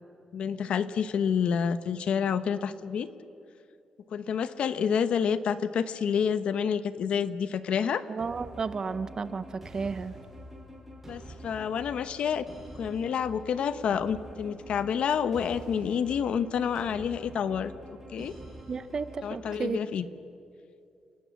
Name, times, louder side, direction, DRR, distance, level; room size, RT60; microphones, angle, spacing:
voice 1, 0.3-3.1 4.1-8.1 11.1-12.5 12.8-18.3 19.2-20.0, left 7 dB, 60° left, 13 dB, 1.0 m, -28 dB
voice 2, 8.1-10.2 18.7-19.8, right 5 dB, 35° right, 13 dB, 0.8 m, -33 dB
sound 1, 8.2-19.6, right 1 dB, 15° right, 6.1 m, -46 dB
29.0 x 19.0 x 7.2 m, 2.6 s
wide cardioid pair, 155°, 2 cm